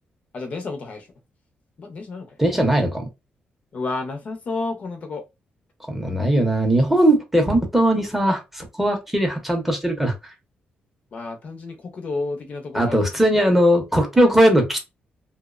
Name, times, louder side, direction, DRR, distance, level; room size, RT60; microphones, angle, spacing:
voice 1, 0.3-1.1 1.8-2.4 3.7-5.2 11.1-13.1, left 3 dB, 45° left, 0.5 m, -31 dB
voice 2, 2.4-3.1 5.9-10.3 12.7-14.8, right 1 dB, 5° right, 0.5 m, -19 dB
2.7 x 2.0 x 2.3 m
wide cardioid pair, 155°, 3 cm